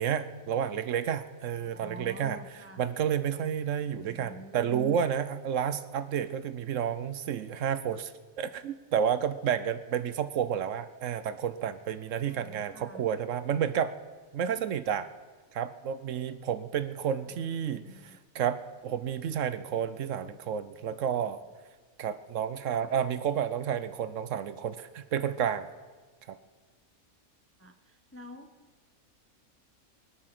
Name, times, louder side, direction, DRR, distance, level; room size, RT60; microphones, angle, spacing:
voice 1, 0.0-2.4 2.8-8.1 8.4-13.9 14.3-15.1 15.5-21.4 22.0-25.7 26.3-26.4, right 8 dB, 70° right, 13 dB, 1.0 m, -31 dB
voice 2, 1.6-2.8 3.9-5.0 12.3-13.0 17.3-18.2 27.6-28.9, left 2 dB, 15° left, 8 dB, 0.6 m, -47 dB
24.5 x 8.5 x 5.9 m, 1.4 s
omnidirectional pair, 1.4 m